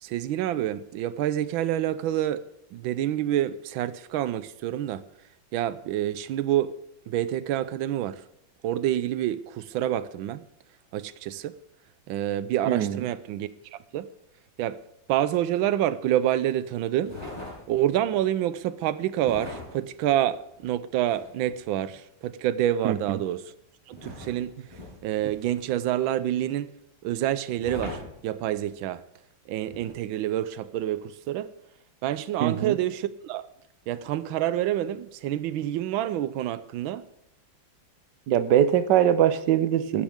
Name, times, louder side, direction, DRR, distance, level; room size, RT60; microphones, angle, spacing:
voice 1, 0.0-5.0 5.5-6.8 7.1-8.2 8.6-10.4 10.9-11.5 12.1-14.1 14.6-14.8 15.1-17.2 17.7-23.5 23.9-26.8 27.0-29.0 29.5-31.5 32.0-33.5 33.9-37.0, right 12 dB, 90° right, 1.4 m, -28 dB
voice 2, 12.7-13.0 22.8-23.2 32.4-32.7 38.3-40.0, right 10 dB, 70° right, 1.4 m, -22 dB
sound 1, 17.0-18.0 19.2-21.6 23.9-25.8 27.6-28.8 29.7-29.9, left 2 dB, 10° right, 6.3 m, -41 dB
15.0 x 12.5 x 3.6 m
omnidirectional pair, 2.1 m